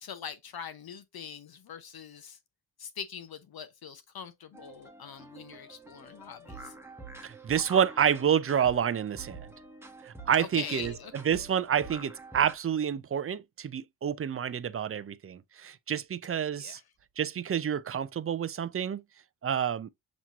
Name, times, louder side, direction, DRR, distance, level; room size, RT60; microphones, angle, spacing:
voice 1, 0.0-2.4 2.8-6.7 10.4-11.1 16.6-16.8, left 7 dB, 55° left, 0.7 m, -43 dB
sound 1, 4.5-12.5, right 2 dB, 5° right, 1.1 m, -47 dB
voice 2, 7.2-9.5 10.0-16.8 17.2-19.0 19.4-19.9, right 8 dB, 30° right, 0.4 m, -29 dB
7.2 x 3.1 x 2.4 m
cardioid pair, 85°, 44 cm